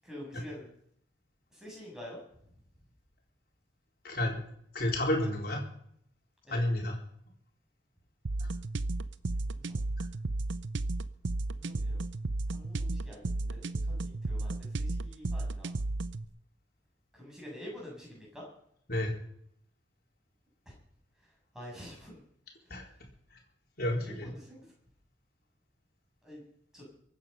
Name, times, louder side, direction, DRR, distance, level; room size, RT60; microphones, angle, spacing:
voice 1, 0.0-0.7 1.5-2.2 6.4-6.6 9.4-9.8 11.4-12.0 12.5-15.7 17.1-18.4 21.5-22.2 24.0-24.6 26.2-26.4 26.7-26.9, left 1 dB, 5° right, -3 dB, 7.7 m, -47 dB
voice 2, 4.0-4.4 4.7-5.6 6.5-7.0 8.4-8.5 18.9-19.2 22.7-22.9 23.3-23.4 23.8-24.3, left 1 dB, 55° left, -1 dB, 4.1 m, -31 dB
sound 1, 8.3-16.3, right 2 dB, 85° right, 0.8 m, -33 dB
23.5 x 9.5 x 5.7 m, 0.70 s
head